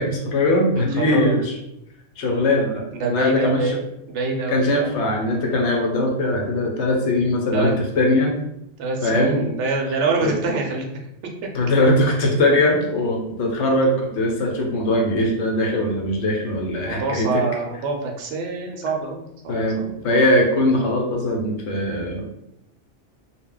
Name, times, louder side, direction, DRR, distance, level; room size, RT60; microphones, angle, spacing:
voice 1, 0.0-1.5 2.2-2.8 3.1-3.7 4.5-8.3 9.0-9.5 10.2-10.3 11.5-17.4 19.5-22.4, left 1 dB, 70° left, 0 dB, 0.9 m, -21 dB
voice 2, 0.8-1.4 2.9-3.8 4.1-5.0 7.5-7.7 8.8-10.9 16.8-19.6, right 3 dB, 75° right, 1 dB, 0.9 m, -25 dB
2.3 x 2.0 x 3.6 m, 0.83 s
omnidirectional pair, 1.3 m